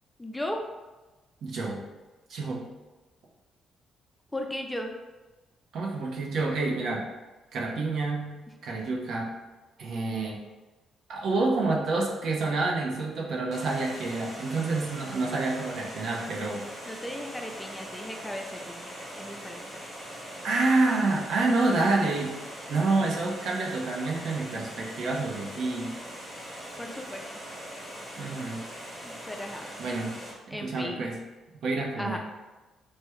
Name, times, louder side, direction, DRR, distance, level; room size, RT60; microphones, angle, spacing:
voice 1, 0.2-0.6 4.3-4.9 16.8-19.7 26.8-27.2 29.0-29.7 30.5-31.1 32.0-32.2, left 1 dB, 10° left, 3 dB, 0.4 m, -36 dB
voice 2, 1.4-1.8 2.3-2.6 5.7-7.1 7.5-8.4 8.6-9.4 9.8-10.4 11.1-16.6 20.4-22.4 22.7-26.0 28.2-28.6 29.8-30.2 30.5-31.2 31.6-32.2, right 3 dB, 70° right, -1 dB, 0.6 m, -28 dB
Water, 13.5-30.3, equal, 25° right, 1.3 m, -41 dB
3.0 x 2.1 x 3.5 m, 1.2 s
cardioid pair, 90°, 0 cm